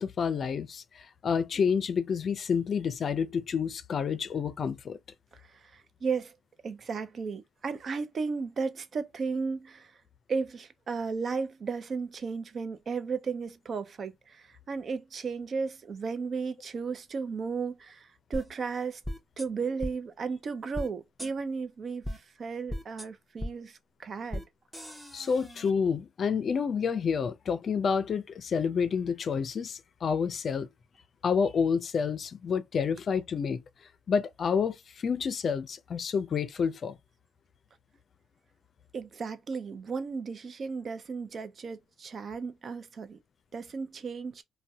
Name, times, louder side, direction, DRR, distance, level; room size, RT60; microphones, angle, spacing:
voice 1, 0.0-5.0 25.1-30.7 31.2-33.6 34.1-37.0, left 6 dB, 50° left, 0.4 m, -29 dB
voice 2, 5.7-6.3 6.6-9.9 10.3-19.0 19.4-22.1 22.4-24.4 38.9-43.2 43.5-44.4, right 5 dB, 50° right, 0.5 m, -34 dB
sound 1, 18.3-18.4 19.0-19.5 19.8-19.9 20.7-20.9 21.2-21.3 22.0-22.2 22.7-23.1 23.4-23.5 24.3-24.4 24.7-25.7, equal, 10° right, 0.8 m, -36 dB
2.6 x 2.2 x 3.3 m
supercardioid pair, 70°, 0 cm